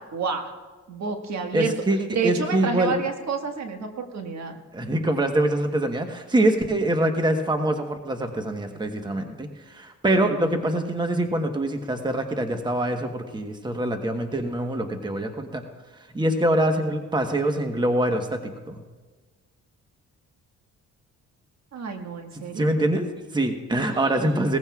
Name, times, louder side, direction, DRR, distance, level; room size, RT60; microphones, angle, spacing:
voice 1, 0.1-0.5 0.9-1.7 2.1-4.6 21.7-22.6 23.9-24.1, right 5 dB, 65° right, 4 dB, 1.7 m, -29 dB
voice 2, 1.5-2.9 4.7-15.6 16.1-18.8 22.6-24.6, right 1 dB, 15° right, 5 dB, 1.2 m, -24 dB
19.5 x 15.0 x 2.4 m, 1.3 s
cardioid pair, 90°, 30 cm